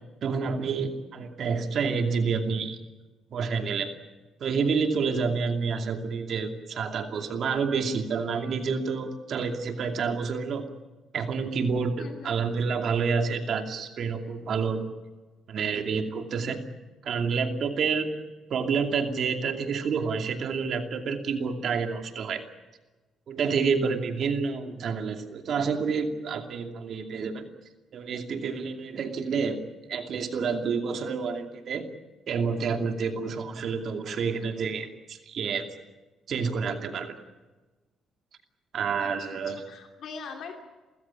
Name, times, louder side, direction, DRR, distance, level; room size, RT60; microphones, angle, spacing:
voice 1, 0.2-2.8 3.3-3.9 4.4-10.7 11.1-14.8 15.5-16.6 17.0-18.1 18.5-22.4 23.3-27.5 27.9-29.6 29.9-31.8 32.3-35.6 36.3-37.2 38.7-39.6, right 5 dB, 60° right, 5 dB, 2.6 m, -28 dB
voice 2, 12.0-12.3 39.0-39.4 39.7-40.6, left 5 dB, 70° left, 3 dB, 2.7 m, -41 dB
29.0 x 15.5 x 8.6 m, 1.2 s
cardioid pair, 90°, 0 cm